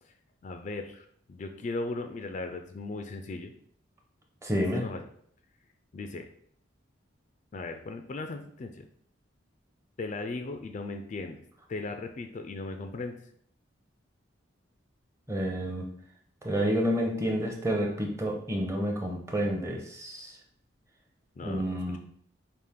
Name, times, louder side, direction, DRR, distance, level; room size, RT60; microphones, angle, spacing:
voice 1, 0.4-3.5 4.6-5.1 5.9-6.3 7.5-8.9 10.0-11.4 11.7-13.2 21.4-22.0, left 3 dB, 40° left, 6 dB, 0.3 m, -37 dB
voice 2, 4.4-4.8 15.3-15.9 16.4-20.3 21.4-22.0, equal, 15° right, 1 dB, 0.6 m, -29 dB
4.9 x 2.5 x 3.5 m, 0.64 s
head